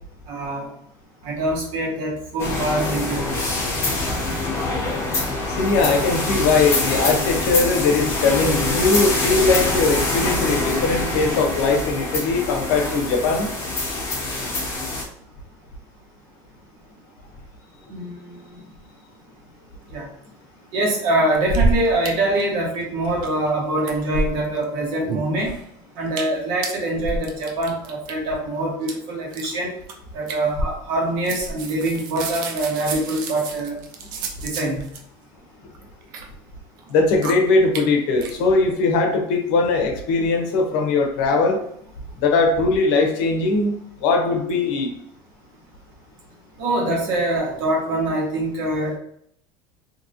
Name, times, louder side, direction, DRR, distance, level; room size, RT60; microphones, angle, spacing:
voice 1, 0.3-0.7 1.2-3.3 17.9-18.4 19.9-20.1 20.7-25.6 26.0-29.7 30.1-33.7 34.4-34.8 46.6-49.0, right 1 dB, 70° right, -2 dB, 1.1 m, -24 dB
sound 1, 2.4-15.0, left 2 dB, 25° left, 0.7 m, -24 dB
voice 2, 5.5-13.5 36.9-41.6 42.2-44.9, left 3 dB, 75° left, 3 dB, 0.7 m, -20 dB
sound 2, 21.3-22.1 22.3-22.4 22.7-23.5 23.8-24.6 25.0-25.7 26.1-26.4 26.6-28.1 28.8-28.9 29.3-29.5 29.9-30.0 30.3-31.0 31.2-35.0 35.7-36.2 36.8-36.9 37.2-37.3 37.7-37.8 38.2-38.3, right 2 dB, 85° right, 0.6 m, -28 dB
2.9 x 2.8 x 2.6 m, 0.68 s
cardioid pair, 150°, 11 cm